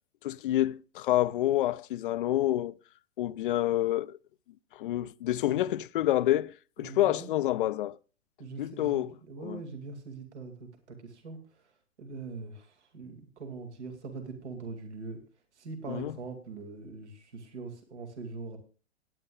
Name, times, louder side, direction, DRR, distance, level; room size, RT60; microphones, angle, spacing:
voice 1, 0.2-2.7 3.2-4.2 4.7-8.0 8.6-9.1 9.4-9.6 15.9-16.1, left 14 dB, 50° left, 0.5 m, -28 dB
voice 2, 6.8-7.3 8.4-11.6 12.0-15.2 15.6-18.6, right 4 dB, 70° right, 2.5 m, -42 dB
18.0 x 9.6 x 2.4 m
figure-of-eight pair, 115°, 35 cm